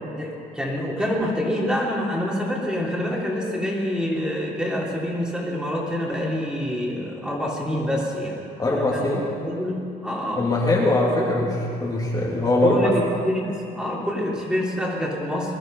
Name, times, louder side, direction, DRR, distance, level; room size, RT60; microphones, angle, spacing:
voice 1, 0.2-10.5 11.2-11.5 12.6-15.5, left 1 dB, 5° right, -4 dB, 3.4 m, -26 dB
voice 2, 8.6-9.2 10.4-11.5 11.8-12.8, left 2 dB, 25° left, -4 dB, 2.6 m, -21 dB
21.5 x 12.0 x 5.4 m, 2.6 s
cardioid pair, 110°, 17 cm